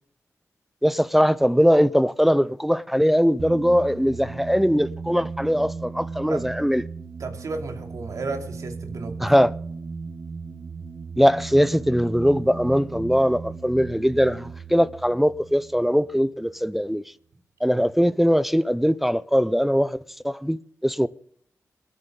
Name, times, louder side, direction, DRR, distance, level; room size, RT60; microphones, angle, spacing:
voice 1, 0.8-6.8 9.2-9.5 11.2-17.0 17.6-20.0 20.2-21.1, equal, 5° right, 0.5 m, -21 dB
sound 1, 3.4-16.6, right 4 dB, 50° right, 1.0 m, -36 dB
voice 2, 7.2-9.2 17.7-17.8, right 3 dB, 75° right, 2.6 m, -33 dB
26.5 x 9.6 x 3.8 m
cardioid pair, 65°, 6 cm